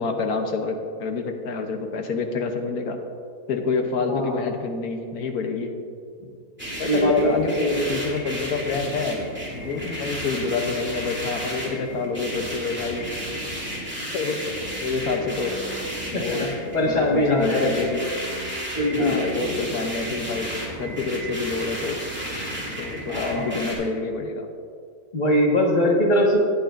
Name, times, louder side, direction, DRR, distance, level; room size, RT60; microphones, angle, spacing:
voice 1, 0.0-3.0 3.5-5.7 6.8-7.5 7.9-9.2 9.5-13.0 14.1-14.4 14.8-15.6 16.1-16.5 16.9-18.0 19.0-22.0 22.6-24.5, left 4 dB, 75° left, 5 dB, 1.4 m, -28 dB
voice 2, 4.0-4.5 6.8-8.0 16.1-18.1 18.8-19.6 23.1-23.5 25.1-26.4, left 1 dB, 30° left, -2 dB, 1.7 m, -22 dB
sound 1, 6.6-23.7, equal, 5° right, 2.4 m, -33 dB
18.5 x 7.8 x 2.6 m, 2.3 s
omnidirectional pair, 1.7 m